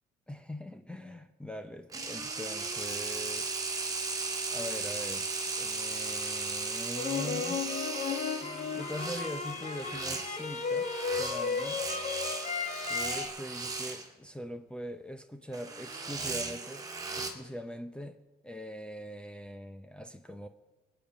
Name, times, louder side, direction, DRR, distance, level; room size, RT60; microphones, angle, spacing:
voice 1, 0.3-3.6 4.5-7.7 8.4-10.9 11.2-11.8 12.9-16.9 17.2-20.5, equal, 5° left, 0.7 m, -42 dB
sound 1, 1.9-14.1 15.5-17.3, right 3 dB, 20° right, 2.1 m, -36 dB
sound 2, 6.9-13.3, left 5 dB, 45° left, 1.6 m, -34 dB
21.5 x 9.0 x 5.0 m
cardioid pair, 110°, 17 cm